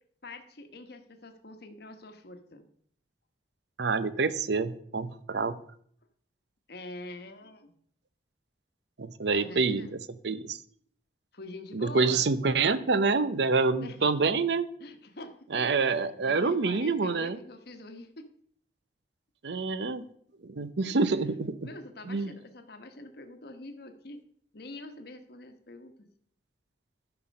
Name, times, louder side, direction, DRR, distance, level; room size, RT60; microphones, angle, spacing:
voice 1, 0.2-2.7 6.7-7.7 9.3-10.0 11.3-12.3 13.8-14.0 14.8-18.2 20.8-21.1 21.6-24.2 24.5-25.9, left 2 dB, 60° left, 7 dB, 1.1 m, -45 dB
voice 2, 3.8-5.6 9.0-10.0 10.2-10.6 11.7-14.7 15.5-17.4 19.4-20.0 20.4-21.6 22.1-22.3, right 4 dB, 65° right, 15 dB, 0.6 m, -27 dB
11.0 x 5.9 x 5.3 m, 0.63 s
head